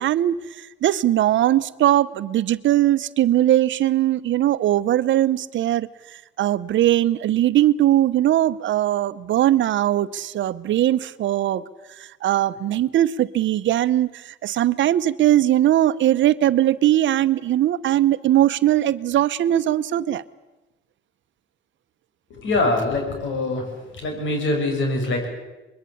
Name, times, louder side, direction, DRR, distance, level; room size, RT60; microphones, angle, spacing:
voice 1, 0.0-5.9 6.4-11.6 12.0-20.2, right 13 dB, 70° right, 15 dB, 0.9 m, -20 dB
voice 2, 22.3-23.7 23.9-25.3, left 2 dB, 75° left, 3 dB, 7.8 m, -23 dB
24.5 x 22.0 x 8.5 m, 1.1 s
cardioid pair, 90°, 20 cm